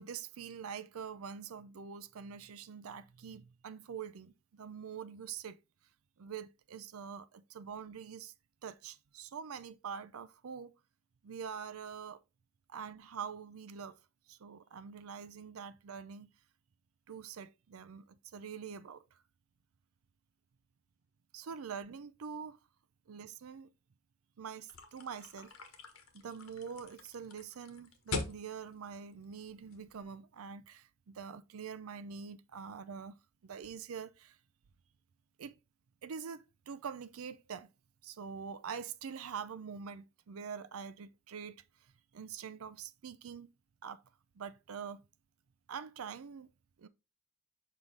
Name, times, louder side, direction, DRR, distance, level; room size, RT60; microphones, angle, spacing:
voice 1, 0.0-5.6 6.2-8.3 8.6-10.7 11.2-12.2 12.7-14.0 14.3-16.3 17.1-19.0 21.3-22.6 23.1-23.7 24.4-25.5 26.1-33.2 33.4-34.4 35.4-35.5 36.0-37.7 38.0-41.6 42.1-43.5 43.8-44.0 44.4-45.0 45.7-46.5 46.8-46.9, right 6 dB, 85° right, 0.5 m, -45 dB
sound 1, 24.7-30.0, left 3 dB, 80° left, 1.3 m, -44 dB
5.6 x 4.7 x 3.8 m
head